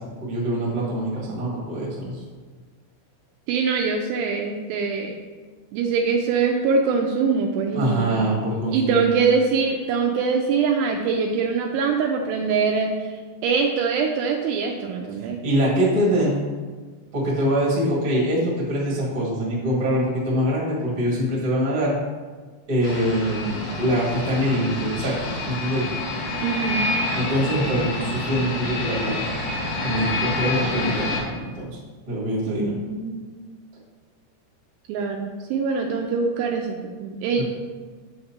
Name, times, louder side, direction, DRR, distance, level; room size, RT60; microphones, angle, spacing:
voice 1, 0.2-2.2 7.7-9.1 15.2-16.4 17.1-22.0 22.7-25.9 27.1-29.2 29.5-31.8 32.1-32.8 37.4-37.5, equal, 50° right, -5 dB, 1.0 m, -24 dB
voice 2, 3.5-5.2 5.7-8.2 8.7-13.1 13.4-15.4 26.4-26.8 32.5-33.3 34.9-37.4, right 5 dB, 85° right, 2 dB, 2.5 m, -23 dB
sound 1, 22.8-31.2, left 2 dB, 65° left, 2.1 m, -28 dB
7.3 x 6.6 x 2.9 m, 1.4 s
omnidirectional pair, 5.1 m